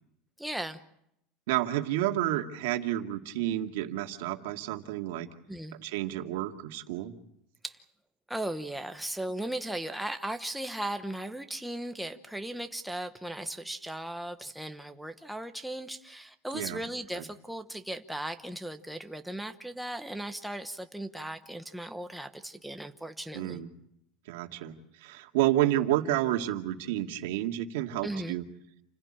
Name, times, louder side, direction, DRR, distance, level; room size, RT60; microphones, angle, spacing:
voice 1, 0.4-0.8 5.5-5.8 7.6-7.8 8.3-23.6 28.0-28.4, right 1 dB, ahead, 7 dB, 1.0 m, -37 dB
voice 2, 1.5-5.3 5.8-7.1 16.5-16.8 17.2-17.3 23.3-23.7 24.3-24.7 25.0-28.4, right 14 dB, 80° right, 5 dB, 2.2 m, -30 dB
29.0 x 16.5 x 8.9 m, 0.78 s
cardioid pair, 180°, 0 cm